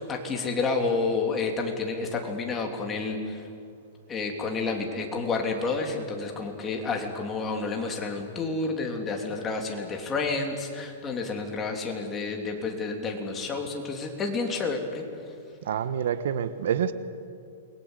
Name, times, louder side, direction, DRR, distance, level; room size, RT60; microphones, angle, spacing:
voice 1, 0.0-3.4 4.1-15.0, left 3 dB, 15° left, 3.4 m, -30 dB
voice 2, 15.6-16.9, right 8 dB, 70° right, 1.4 m, -27 dB
28.5 x 22.0 x 8.3 m
hypercardioid pair, 155°, 0 cm